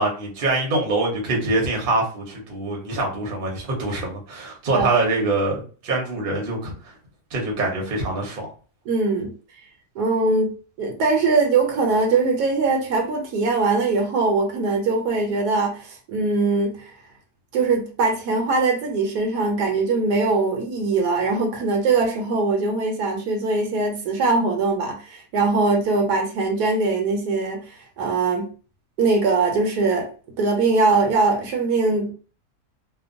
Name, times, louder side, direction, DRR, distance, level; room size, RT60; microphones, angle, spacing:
voice 1, 0.0-6.9 7.3-8.5, right 2 dB, 45° right, 0.8 m, -24 dB
voice 2, 8.9-9.3 10.0-10.5 10.8-16.9 17.5-28.5 29.0-30.1 30.4-32.1, right 3 dB, 75° right, 1.1 m, -21 dB
2.8 x 2.2 x 2.5 m
omnidirectional pair, 1.8 m